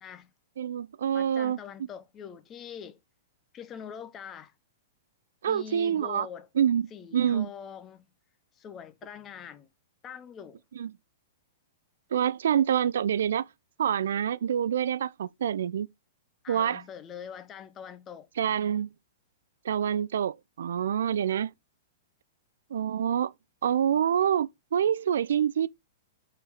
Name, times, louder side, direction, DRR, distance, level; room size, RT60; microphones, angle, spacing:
voice 1, 0.0-0.3 1.1-3.0 3.5-4.5 5.4-6.5 6.9-8.1 8.6-9.7 10.0-10.6 16.4-18.3, left 8 dB, 20° left, 0.7 m, -43 dB
voice 2, 0.6-1.6 5.4-6.3 6.6-6.9 7.1-7.5 10.8-10.9 12.1-13.5 13.8-15.9 16.5-16.8 18.4-18.9 19.6-21.5 22.7-23.3 23.6-25.7, right 9 dB, 80° right, 0.4 m, -26 dB
6.9 x 4.4 x 3.9 m
hypercardioid pair, 145°, 0 cm